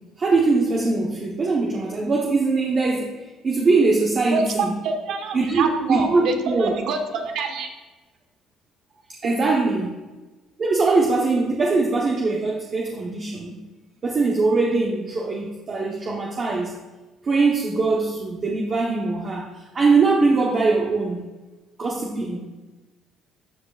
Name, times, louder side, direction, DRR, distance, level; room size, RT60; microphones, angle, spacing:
voice 1, 0.2-4.7 5.3-6.7 9.2-9.9 10.6-13.6 14.0-16.7 17.2-21.2 21.8-22.4, right 3 dB, 30° right, -1 dB, 1.0 m, -22 dB
voice 2, 4.3-7.7, right 4 dB, 70° right, 4 dB, 1.3 m, -26 dB
13.5 x 7.4 x 2.4 m, 1.2 s
cardioid pair, 160°, 0 cm